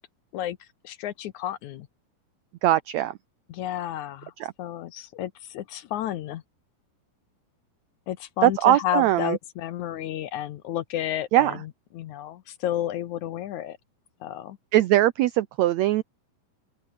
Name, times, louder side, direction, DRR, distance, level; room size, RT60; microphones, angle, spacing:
voice 1, 0.8-1.9 3.5-4.3 4.6-6.4 8.1-13.8 14.2-14.6, left 12 dB, 70° left, 2.1 m, -31 dB
voice 2, 2.6-3.1 4.4-4.5 8.4-9.4 11.3-11.6 14.7-16.0, right 14 dB, 85° right, 1.5 m, -21 dB
open air
omnidirectional pair, 4.0 m